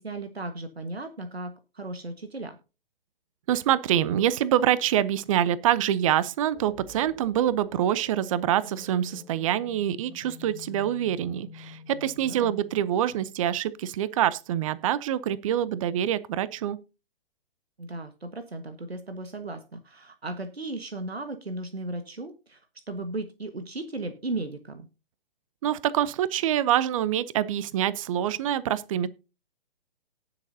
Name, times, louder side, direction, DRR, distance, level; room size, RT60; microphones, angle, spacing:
voice 1, 0.0-2.6 12.2-12.6 17.8-22.6 22.9-24.9, right 2 dB, 90° right, 1.5 m, -36 dB
voice 2, 3.5-16.8 25.6-29.1, right 11 dB, 35° right, 0.7 m, -25 dB
sound 1, 6.5-14.3, left 2 dB, ahead, 2.7 m, -48 dB
18.5 x 6.8 x 2.7 m
figure-of-eight pair, 130°, 30 cm